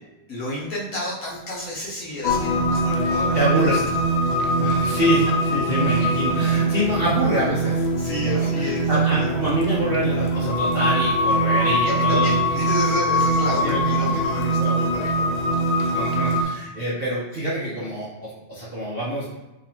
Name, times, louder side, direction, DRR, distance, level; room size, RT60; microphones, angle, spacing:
voice 1, 0.3-3.8 8.0-8.9 9.2-9.3 11.8-15.8 16.5-16.6, left 1 dB, 55° left, -6 dB, 1.0 m, -31 dB
sound 1, 2.2-16.4, right 1 dB, 80° left, 1.4 m, -22 dB
voice 2, 3.0-3.8 4.6-12.4 13.6-14.8 15.9-19.2, right 1 dB, 70° right, -8 dB, 0.5 m, -26 dB
4.0 x 2.9 x 2.8 m, 1.1 s
omnidirectional pair, 2.2 m